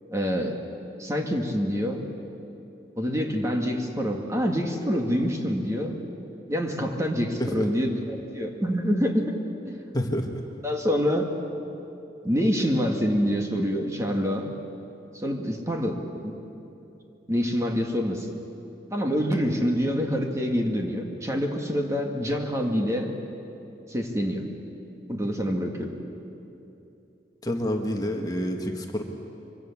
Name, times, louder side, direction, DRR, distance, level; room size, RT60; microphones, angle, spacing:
voice 1, 0.1-0.5 1.0-2.0 3.0-5.9 6.5-9.2 9.7-9.8 10.6-11.3 12.2-14.5 15.1-16.3 17.3-18.3 18.9-23.1 23.9-24.4 25.1-25.9, equal, 15° right, 2 dB, 2.0 m, -26 dB
voice 2, 9.9-10.3 27.4-29.0, equal, 20° left, 2 dB, 1.6 m, -28 dB
25.0 x 24.5 x 7.3 m, 2.9 s
head